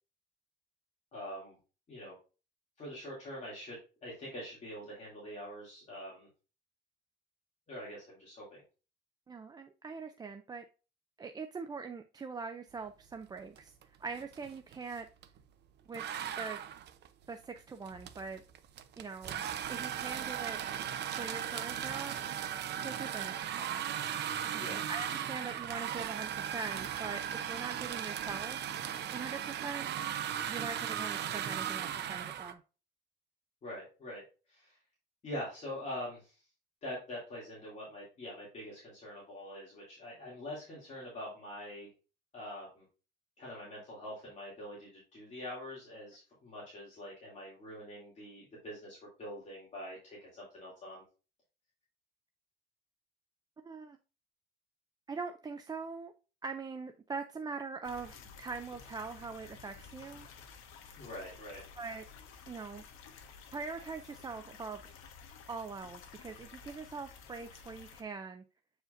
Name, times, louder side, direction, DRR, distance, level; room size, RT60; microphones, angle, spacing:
voice 1, 1.1-1.5 1.9-2.1 2.8-3.8 4.0-6.3 7.7-8.6 24.6-24.8 33.6-34.2 34.5-34.8 35.2-36.4 36.8-41.9 42.3-42.8 43.4-51.0 61.0-61.6, left 1 dB, 35° left, 2.6 m, -44 dB
voice 2, 9.3-10.6 11.2-15.1 15.9-16.0 16.4-16.6 17.3-18.4 19.0-19.4 19.7-20.6 21.2-22.2 22.8-23.8 24.5-28.6 29.1-29.9 30.5-32.6 53.6-54.0 55.1-56.1 56.4-60.3 61.8-62.0 62.5-62.8 63.5-64.8 65.5-68.4, right 4 dB, 20° right, 0.4 m, -42 dB
sound 1, 13.6-13.8 14.1-15.4 15.9-32.5, right 10 dB, 55° right, 0.7 m, -37 dB
sound 2, 57.8-68.0, left 6 dB, 90° left, 1.2 m, -53 dB
7.8 x 4.9 x 2.6 m
cardioid pair, 150°, 21 cm